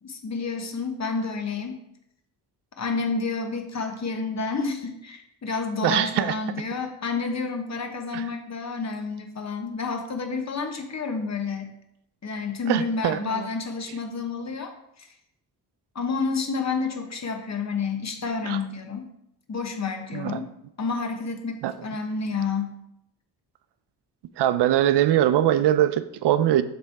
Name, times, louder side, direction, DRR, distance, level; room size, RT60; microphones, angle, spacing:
voice 1, 0.0-1.8 2.8-11.7 12.2-14.7 15.0-15.1 15.9-19.1 19.5-20.5 20.8-22.7, left 4 dB, 40° left, 5 dB, 1.1 m, -29 dB
voice 2, 5.8-6.4 8.1-8.2 12.7-13.5 18.5-18.6 20.1-20.4 21.6-21.7 24.4-26.6, right 12 dB, 80° right, 13 dB, 0.5 m, -22 dB
7.3 x 3.4 x 4.5 m, 0.80 s
cardioid pair, 80°, 40 cm